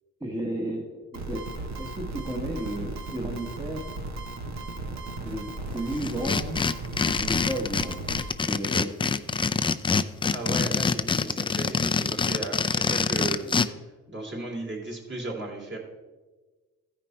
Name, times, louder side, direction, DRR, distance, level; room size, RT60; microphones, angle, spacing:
voice 1, 0.2-3.8 5.2-5.5 5.7-6.6 7.2-8.0 8.5-8.9, right 1 dB, 15° right, -1 dB, 1.1 m, -33 dB
sound 1, 1.1-8.3, right 2 dB, 65° right, 1.2 m, -36 dB
sound 2, 6.0-13.7, left 5 dB, 15° left, 0.4 m, -25 dB
voice 2, 10.3-15.8, right 2 dB, 40° right, -1 dB, 2.9 m, -36 dB
14.5 x 5.2 x 4.4 m, 1.3 s
cardioid pair, 90°, 30 cm